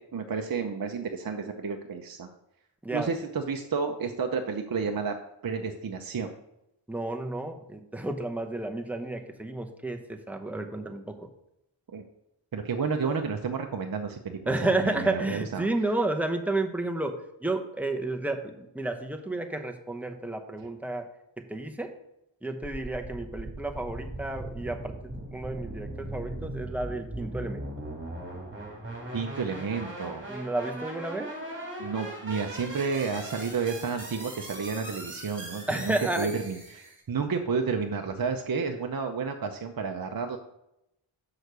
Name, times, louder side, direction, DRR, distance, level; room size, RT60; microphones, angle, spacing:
voice 1, 0.0-2.3 2.9-5.2 5.4-6.3 11.9-12.0 12.5-15.7 29.1-30.2 31.8-40.4, right 5 dB, 50° right, 4 dB, 0.7 m, -31 dB
voice 2, 6.9-11.3 14.5-21.1 21.4-21.9 22.4-27.7 30.3-31.3 35.7-36.3, right 2 dB, 5° right, 5 dB, 0.9 m, -31 dB
sound 1, 22.6-37.0, right 1 dB, 25° right, 2.4 m, -39 dB
6.4 x 4.8 x 6.7 m, 0.83 s
wide cardioid pair, 70°, 46 cm